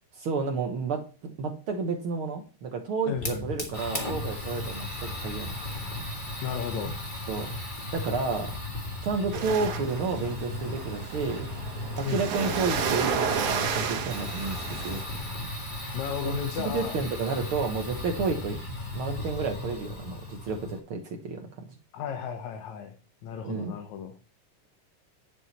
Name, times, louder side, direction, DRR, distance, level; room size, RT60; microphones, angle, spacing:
voice 1, 0.2-5.5 7.3-7.5 7.9-8.5 9.0-11.5 12.0-15.0 16.6-18.6 18.9-21.5 23.4-23.8, right 4 dB, 60° right, 4 dB, 1.6 m, -31 dB
voice 2, 3.1-3.5 4.3-4.5 6.4-7.0 12.0-12.3 15.9-17.0 21.9-23.0 23.2-24.1, left 6 dB, 70° left, 6 dB, 2.2 m, -34 dB
Fire, 3.2-20.8, left 2 dB, 20° left, 1.3 m, -36 dB
sound 1, 9.3-15.0, right 6 dB, 75° right, 2.8 m, -31 dB
9.8 x 7.7 x 4.2 m, 0.35 s
omnidirectional pair, 3.5 m